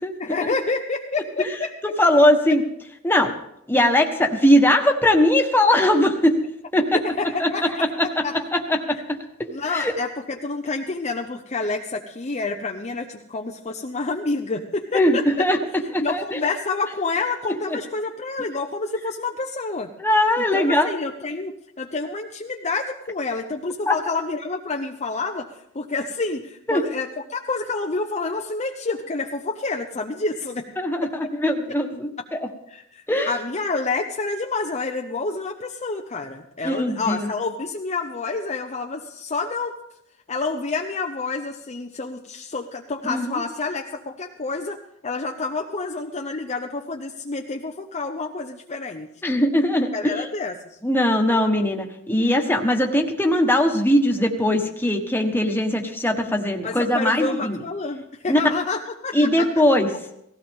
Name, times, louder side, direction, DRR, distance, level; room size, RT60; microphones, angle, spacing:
voice 1, 0.2-1.7 6.9-8.3 8.9-9.0 9.5-15.3 16.0-19.9 20.4-25.5 25.7-30.6 31.0-31.1 32.7-39.8 40.3-49.1 49.9-50.8 56.6-59.5, left 3 dB, 30° left, 2 dB, 0.8 m, -28 dB
voice 2, 1.8-2.6 3.0-3.3 3.7-6.4 6.7-7.0 7.4-7.5 7.8-9.9 14.9-15.6 15.9-16.4 17.7-17.8 20.0-20.9 23.9-24.0 26.7-26.8 30.8-32.4 33.1-33.3 36.6-37.3 43.0-43.3 49.2-50.3 50.8-57.6 58.3-58.4 59.1-59.9, left 1 dB, 10° left, 3 dB, 1.5 m, -20 dB
18.0 x 16.0 x 3.7 m, 0.76 s
head